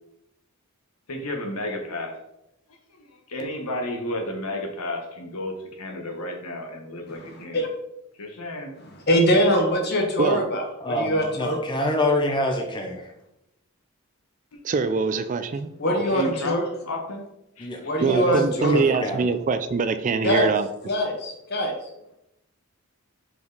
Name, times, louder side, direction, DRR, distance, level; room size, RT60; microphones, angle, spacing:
voice 1, 1.1-2.1 3.1-7.6 8.2-8.8 14.5-14.6 15.8-17.2 17.6-17.7, left 1 dB, 85° left, 3 dB, 1.2 m, -32 dB
voice 2, 7.1-7.7 9.1-11.6 15.8-16.6 17.8-18.8 20.2-20.5 20.9-21.7, equal, 45° left, 2 dB, 1.3 m, -23 dB
voice 3, 10.8-13.1 17.6-17.8 18.1-18.4 18.7-19.2, left 1 dB, 20° left, 2 dB, 0.7 m, -26 dB
voice 4, 14.6-15.7 18.0-20.7, right 4 dB, 35° right, 10 dB, 0.3 m, -23 dB
5.2 x 4.9 x 4.0 m, 0.85 s
head